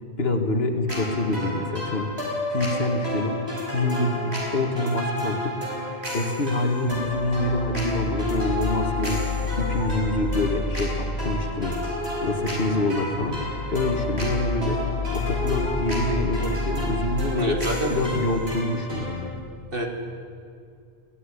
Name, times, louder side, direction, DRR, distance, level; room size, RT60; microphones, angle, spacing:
voice 1, 0.2-2.1 2.5-3.4 3.7-5.6 6.1-11.8 12.2-13.4 13.7-14.8 15.1-17.6 17.9-19.3, left 2 dB, 70° left, 5 dB, 2.2 m, -26 dB
sound 1, 0.9-19.2, equal, 85° right, 6.0 m, -32 dB
sound 2, 6.9-18.6, left 3 dB, 30° left, 1.1 m, -31 dB
voice 2, 17.4-17.9 19.7-19.9, right 1 dB, 60° right, 1 dB, 3.0 m, -26 dB
21.0 x 16.0 x 10.0 m, 2.4 s
omnidirectional pair, 1.1 m